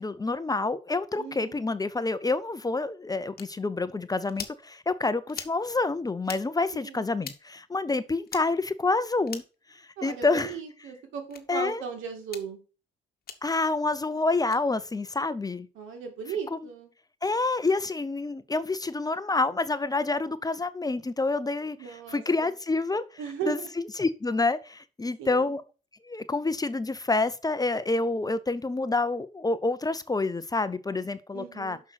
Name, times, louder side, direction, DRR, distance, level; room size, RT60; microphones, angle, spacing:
voice 1, 0.0-9.4 9.7-10.5 11.5-11.8 13.4-15.7 17.2-21.8 22.1-23.0 23.5-23.6 24.0-25.6 26.0-31.8, left 3 dB, 20° left, 0.7 m, -28 dB
voice 2, 1.2-1.6 6.7-7.1 10.0-12.6 15.7-16.9 21.8-22.5 23.2-23.7 25.2-25.6 31.3-31.8, right 7 dB, 85° right, 2.5 m, -37 dB
sound 1, 3.4-3.5 4.3-4.6 5.3-5.6 6.2-6.4 7.2-7.4 8.3-8.4 9.3-9.6 10.3-10.5 11.3-11.4 12.2-12.5 13.3-13.4 14.4-14.6, left 7 dB, 50° left, 1.3 m, -40 dB
6.2 x 5.9 x 5.8 m
cardioid pair, 90°, 20 cm